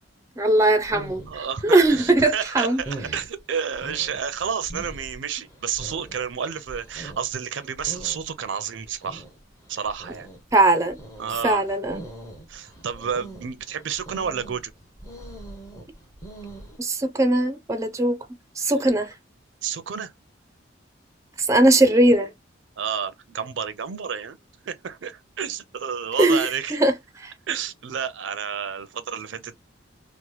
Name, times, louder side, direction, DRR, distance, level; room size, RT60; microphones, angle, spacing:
voice 1, 0.4-1.2 1.6-2.8 10.5-11.0 11.4-12.0 16.8-18.2 18.6-19.1 21.4-22.3 26.2-26.9 27.2-27.3, right 2 dB, 15° right, 0.4 m, -19 dB
sound 1, 0.6-16.8, right 2 dB, 15° left, 0.7 m, -42 dB
voice 2, 1.3-9.2 9.7-10.3 11.2-11.6 12.0-12.1 12.5-14.7 18.7-18.8 19.6-20.1 22.8-24.4 24.7-26.8 27.5-29.7, right 7 dB, 80° right, 0.5 m, -30 dB
2.9 x 2.1 x 3.0 m
head